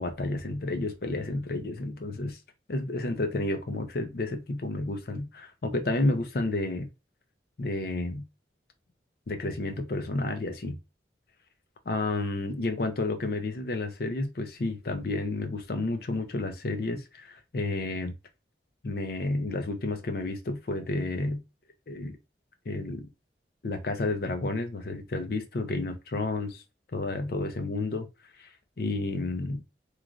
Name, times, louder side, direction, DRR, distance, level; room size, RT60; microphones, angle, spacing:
voice 1, 0.0-2.4 2.7-6.9 7.6-8.2 9.3-10.8 11.9-18.1 18.8-21.4 21.9-22.2 22.7-23.1 23.6-26.6 26.9-28.1 28.4-28.5 28.8-29.6, left 2 dB, 55° left, 0.5 m, -31 dB
3.1 x 2.4 x 2.4 m
head